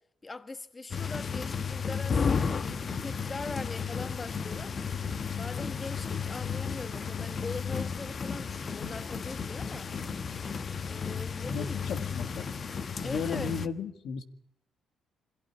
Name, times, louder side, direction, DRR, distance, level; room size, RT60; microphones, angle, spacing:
voice 1, 0.2-2.2 2.7-4.8 5.4-9.9 10.9-11.8 13.0-13.6, left 3 dB, 25° left, 1.2 m, -41 dB
sound 1, 0.9-13.7, left 6 dB, 45° left, 1.2 m, -33 dB
voice 2, 11.4-12.5 13.0-14.2, left 5 dB, 75° left, 1.8 m, -35 dB
23.5 x 17.0 x 9.8 m
cardioid pair, 90°, 0 cm